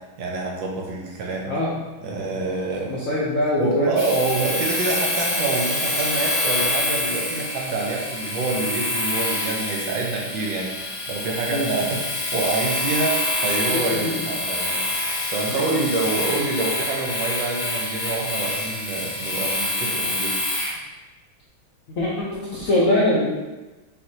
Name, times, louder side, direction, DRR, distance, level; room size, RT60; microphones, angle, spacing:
voice 1, 0.2-1.5 2.0-3.1 3.6-20.3, right 3 dB, 75° right, -1 dB, 1.4 m, -27 dB
voice 2, 1.4-1.8 2.3-2.4 2.9-3.9 11.5-11.7 13.7-14.1 15.5-15.9 21.9-23.3, left 1 dB, 70° left, -6 dB, 0.7 m, -23 dB
Domestic sounds home sounds, 3.9-20.8, left 1 dB, 40° left, 0.7 m, -26 dB
6.2 x 2.7 x 2.7 m, 1.1 s
omnidirectional pair, 2.2 m